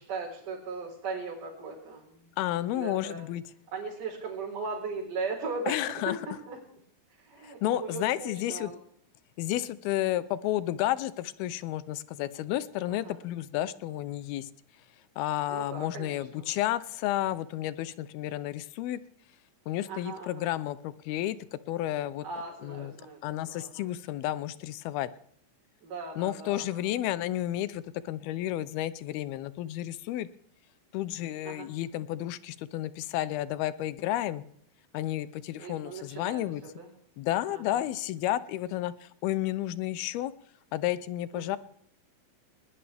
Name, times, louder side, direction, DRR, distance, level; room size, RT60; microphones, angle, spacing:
voice 1, 0.0-2.1 2.7-3.3 3.7-6.1 6.5-6.6 7.2-8.8 12.9-13.2 15.5-16.5 19.9-20.5 22.2-23.2 23.5-23.8 25.8-26.8 31.4-31.7 35.6-36.9 37.5-37.8 41.3-41.6, right 4 dB, 50° right, -7 dB, 5.7 m, -38 dB
voice 2, 2.4-3.4 5.7-6.2 7.4-8.7 9.4-14.5 15.2-19.0 19.7-21.4 21.7-22.2 22.6-22.9 23.2-25.1 26.2-30.3 30.9-34.4 34.9-36.6 37.2-40.3 40.7-41.6, left 14 dB, 80° left, 16 dB, 2.4 m, -31 dB
20.0 x 19.0 x 3.5 m, 0.67 s
omnidirectional pair, 4.8 m